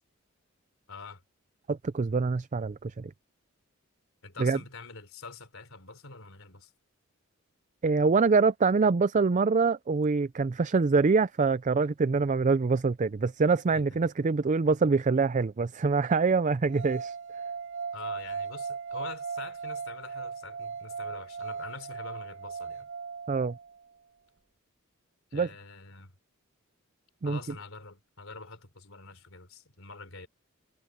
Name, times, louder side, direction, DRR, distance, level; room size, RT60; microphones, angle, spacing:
voice 1, 0.9-1.2 4.2-6.7 13.7-14.0 17.9-22.9 25.3-26.1 27.2-30.3, left 4 dB, 70° left, 4.0 m, -45 dB
voice 2, 1.7-3.1 4.4-4.6 7.8-17.2 23.3-23.6 25.3-25.5 27.2-27.4, right 4 dB, 35° right, 0.4 m, -25 dB
sound 1, 16.7-23.8, right 5 dB, 60° right, 0.8 m, -38 dB
head